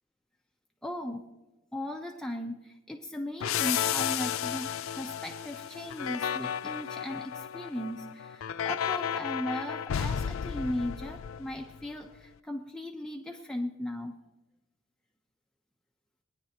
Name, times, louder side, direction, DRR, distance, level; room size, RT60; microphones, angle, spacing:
voice 1, 0.8-1.2 1.7-14.2, left 1 dB, 5° left, 1 dB, 0.7 m, -37 dB
sound 1, 3.4-11.9, left 9 dB, 85° left, 0.4 m, -33 dB
23.0 x 10.0 x 2.9 m, 1.1 s
head